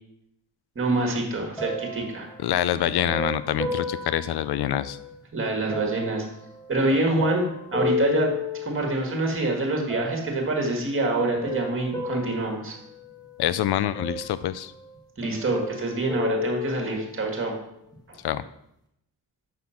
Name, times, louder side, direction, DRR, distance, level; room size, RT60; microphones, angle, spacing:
voice 1, 0.8-2.3 5.3-6.2 6.7-7.5 7.7-8.3 8.6-12.8 15.2-17.5, right 2 dB, 30° right, 1 dB, 1.8 m, -26 dB
sound 1, 1.6-5.2 5.7-9.2 9.9-10.6 11.2-13.5 13.9-15.0 15.2-17.3 17.9-18.0, left 3 dB, 10° left, 1.2 m, -33 dB
voice 2, 2.4-5.0 13.4-14.7 18.2-18.4, left 12 dB, 70° left, 15 dB, 0.5 m, -25 dB
6.5 x 5.8 x 5.7 m, 0.79 s
wide cardioid pair, 165°, 41 cm